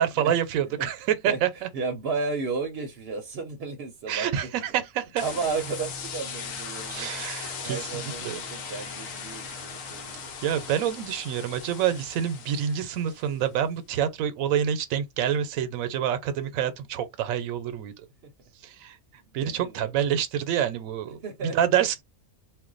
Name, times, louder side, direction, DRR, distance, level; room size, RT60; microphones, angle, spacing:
voice 1, 0.0-1.7 4.1-5.2 6.9-8.4 9.5-9.6 10.4-17.9 18.6-19.0 19.3-22.0, right 9 dB, 80° right, 1.0 m, -27 dB
voice 2, 1.7-4.3 4.7-4.8 5.2-7.2 7.6-10.3 19.4-19.9 21.2-21.6, right 4 dB, 55° right, 0.7 m, -33 dB
sound 1, 5.2-13.4, left 5 dB, 80° left, 1.0 m, -38 dB
2.5 x 2.1 x 3.7 m
omnidirectional pair, 1.4 m